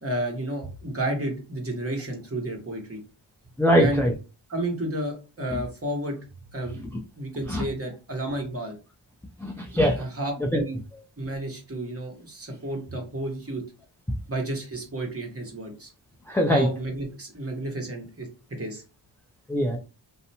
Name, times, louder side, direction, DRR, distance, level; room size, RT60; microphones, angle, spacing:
voice 1, 0.0-3.0 3.8-4.1 4.5-6.2 6.5-6.8 7.2-8.8 9.9-10.3 10.6-10.8 11.2-13.6 14.3-15.9 16.5-18.3 18.6-18.8, right 1 dB, 30° right, 1 dB, 1.2 m, -31 dB
voice 2, 3.6-4.1 7.5-7.6 9.4-10.0 10.5-10.6 16.3-16.7 19.5-19.8, equal, 5° left, 0 dB, 0.4 m, -21 dB
2.6 x 2.1 x 2.8 m, 0.31 s
cardioid pair, 55°, 48 cm